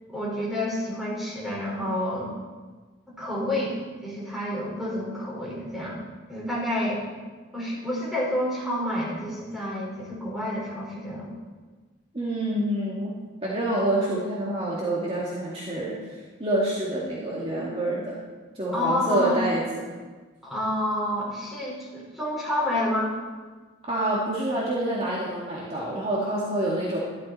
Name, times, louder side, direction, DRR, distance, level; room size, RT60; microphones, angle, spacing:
voice 1, 0.1-2.3 3.2-6.0 6.3-7.0 7.5-11.3 18.7-19.4 20.4-23.1, left 1 dB, ahead, -7 dB, 5.0 m, -29 dB
voice 2, 12.1-15.9 16.4-18.2 18.6-20.0 23.8-27.0, right 1 dB, 30° right, -6 dB, 2.0 m, -27 dB
13.5 x 12.5 x 4.3 m, 1.4 s
head